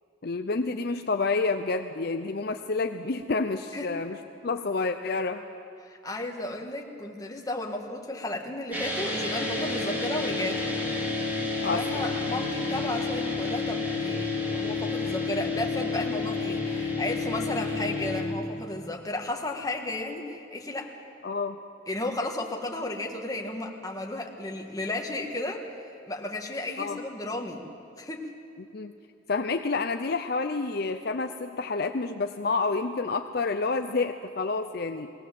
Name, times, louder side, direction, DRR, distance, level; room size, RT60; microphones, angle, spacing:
voice 1, 0.2-4.2 4.4-5.4 11.6-12.2 21.2-21.6 26.8-27.0 28.6-28.9 29.3-35.1, left 3 dB, 55° left, 7 dB, 0.6 m, -29 dB
voice 2, 5.8-10.8 11.7-20.9 21.9-25.6 26.1-27.6 28.0-28.3, left 2 dB, 20° left, 1 dB, 1.7 m, -34 dB
sound 1, 8.7-18.2, left 3 dB, 10° right, 3.1 m, -30 dB
20.5 x 18.0 x 7.6 m, 2.7 s
head